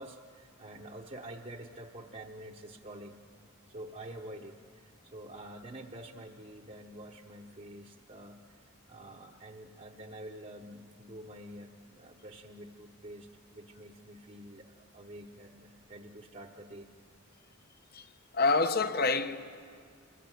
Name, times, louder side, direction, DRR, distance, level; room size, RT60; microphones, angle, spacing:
voice 1, 0.0-3.2 3.7-8.6 8.9-16.9, right 1 dB, 30° right, 1.0 m, -47 dB
voice 2, 17.9-19.6, left 3 dB, 45° left, 0.9 m, -28 dB
26.5 x 20.5 x 9.1 m
head